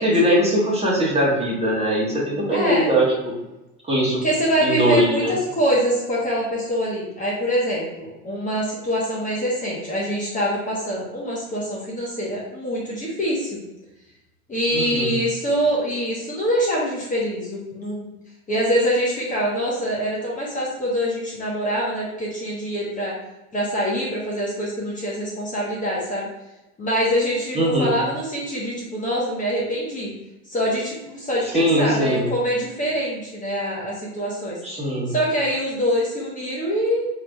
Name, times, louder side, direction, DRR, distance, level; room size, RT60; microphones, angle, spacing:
voice 1, 0.0-3.4 3.8-4.2 4.6-5.3 14.7-15.1 27.5-27.9 31.5-32.3 34.6-35.1, equal, 15° right, -4 dB, 1.3 m, -21 dB
voice 2, 2.5-2.9 4.2-13.6 14.5-18.1 18.5-23.2 23.5-26.3 26.8-30.1 30.5-34.6 35.1-37.1, equal, 20° left, -5 dB, 1.0 m, -24 dB
4.7 x 3.0 x 2.3 m, 0.97 s
hypercardioid pair, 95°, 42 cm